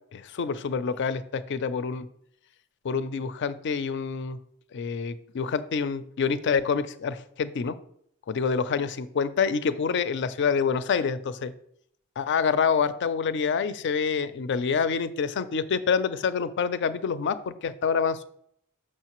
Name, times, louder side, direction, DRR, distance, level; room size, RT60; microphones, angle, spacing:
voice 1, 0.1-2.1 2.8-4.4 4.7-7.8 8.3-11.5 12.2-18.3, left 6 dB, 55° left, 14 dB, 0.4 m, -27 dB
6.4 x 6.2 x 3.0 m, 0.69 s
head